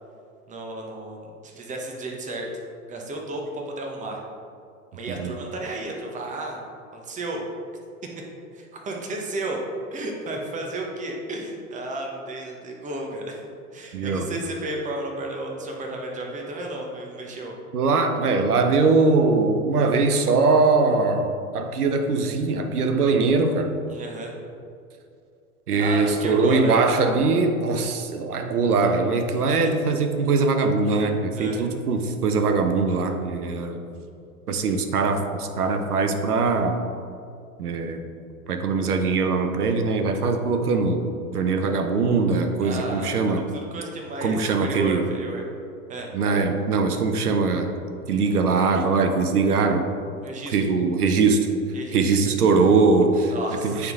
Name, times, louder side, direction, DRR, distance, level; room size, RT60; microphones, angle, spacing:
voice 1, 0.5-2.5 2.9-4.2 4.9-6.6 6.9-7.4 8.5-9.6 9.9-13.4 13.7-17.6 23.9-24.3 25.8-26.8 31.3-31.6 42.6-43.1 43.5-45.4 45.9-46.1 50.2-50.6 51.7-52.1 53.3-53.8, right 2 dB, 15° right, 0 dB, 1.0 m, -33 dB
voice 2, 13.9-14.3 17.7-21.3 21.5-23.7 25.7-33.8 34.5-36.8 37.6-38.0 38.5-43.5 44.2-45.1 46.1-47.7 48.1-49.8 50.5-51.5 51.9-53.3 53.6-53.9, right 4 dB, 85° right, 6 dB, 0.8 m, -21 dB
9.1 x 3.7 x 3.6 m, 2.5 s
hypercardioid pair, 105°, 44 cm